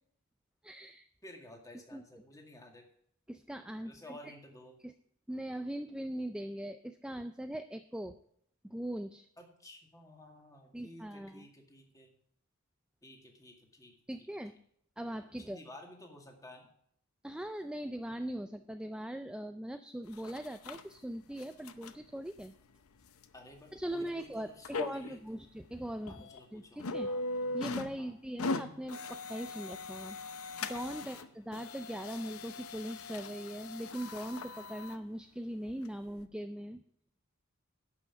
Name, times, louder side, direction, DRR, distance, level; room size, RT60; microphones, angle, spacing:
voice 1, 0.6-1.1 1.9-2.0 3.3-3.9 4.2-4.3 4.8-4.9 5.3-8.2 8.6-9.3 10.7-11.5 14.1-14.5 15.0-15.6 17.2-22.5 23.7-26.2 26.5-27.1 27.5-30.2 30.6-36.8, right 1 dB, 5° right, 8 dB, 0.3 m, -40 dB
voice 2, 1.2-2.8 3.9-4.7 9.4-12.1 13.0-14.3 15.4-16.7 23.3-25.4 26.1-27.3 28.0-28.1 31.0-31.2, left 1 dB, 15° left, 1 dB, 2.0 m, -54 dB
sound 1, 20.1-20.8 21.3-22.0 22.4-22.5 23.2-23.3 23.8-23.9 24.6-25.2 25.6-25.7 26.1-26.4 26.8-28.0 28.2-31.3 31.5-35.0 35.7-35.8 36.2-36.3, left 3 dB, 85° left, 0.7 m, -40 dB
11.5 x 5.7 x 8.1 m, 0.67 s
head